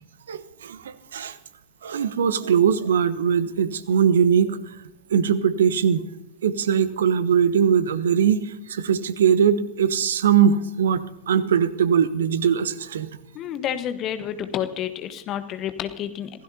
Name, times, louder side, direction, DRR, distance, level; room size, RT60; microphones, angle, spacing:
voice 1, 0.3-1.3 1.8-4.6 5.1-6.0 6.4-8.4 8.7-13.1, right 7 dB, 65° right, 16 dB, 0.9 m, -21 dB
voice 2, 13.3-16.3, left 10 dB, 35° left, 10 dB, 1.3 m, -29 dB
26.5 x 16.0 x 2.8 m, 0.88 s
figure-of-eight pair, 90°, 0 cm